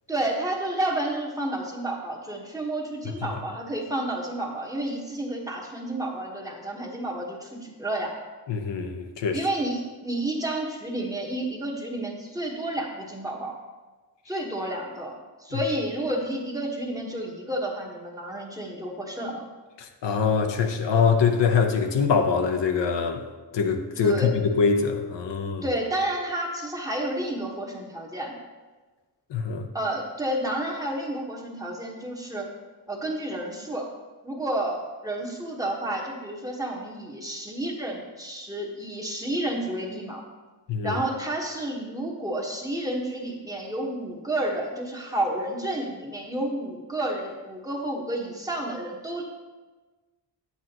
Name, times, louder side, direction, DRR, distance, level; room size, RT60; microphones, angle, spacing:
voice 1, 0.1-8.1 9.3-13.6 14.3-19.4 24.0-24.3 25.6-28.4 29.7-32.5 32.9-33.9 34.2-40.2 40.8-49.2, right 1 dB, 10° right, 1.2 m, -30 dB
voice 2, 8.5-9.4 19.8-23.2 23.5-24.2 24.5-25.6 29.3-29.7 40.7-41.0, left 5 dB, 80° left, 0.8 m, -24 dB
8.8 x 8.3 x 2.9 m
wide cardioid pair, 120°, 42 cm